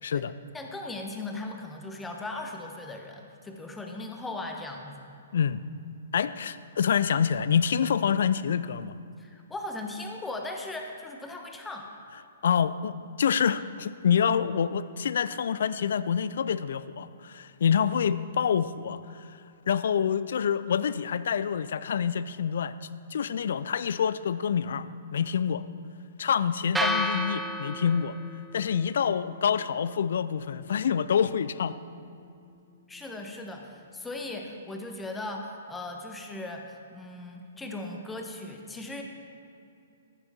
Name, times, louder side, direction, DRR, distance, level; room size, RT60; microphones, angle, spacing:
voice 1, 0.0-0.3 5.3-5.6 6.1-9.0 12.4-19.2 19.7-22.8 23.1-24.9 25.1-25.6 26.2-28.2 28.5-31.8, left 7 dB, 60° left, 15 dB, 0.3 m, -27 dB
voice 2, 0.5-5.1 9.2-11.9 32.9-39.0, left 2 dB, 10° left, 3 dB, 1.1 m, -38 dB
sound 1, 26.7-34.9, equal, 10° right, 0.6 m, -37 dB
14.0 x 6.8 x 4.3 m, 2.6 s
figure-of-eight pair, 120°, 0 cm